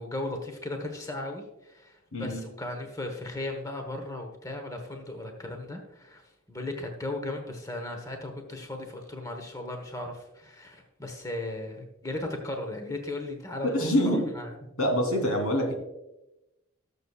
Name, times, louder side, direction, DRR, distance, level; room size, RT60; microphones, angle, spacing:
voice 1, 0.0-13.9 14.3-14.5, left 2 dB, 15° left, 3 dB, 1.1 m, -36 dB
voice 2, 2.1-2.4 13.6-14.3 14.8-15.7, equal, 85° left, 2 dB, 3.1 m, -25 dB
19.0 x 6.9 x 2.4 m, 0.94 s
head